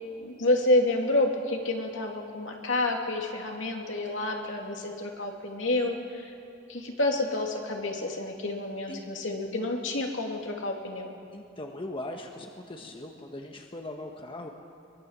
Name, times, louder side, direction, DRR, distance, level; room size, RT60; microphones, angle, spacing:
voice 1, 0.2-6.3 6.7-11.1, left 2 dB, 70° left, 1 dB, 3.0 m, -29 dB
voice 2, 11.3-14.5, left 1 dB, 25° left, 2 dB, 1.4 m, -40 dB
23.5 x 21.5 x 7.5 m, 2.6 s
head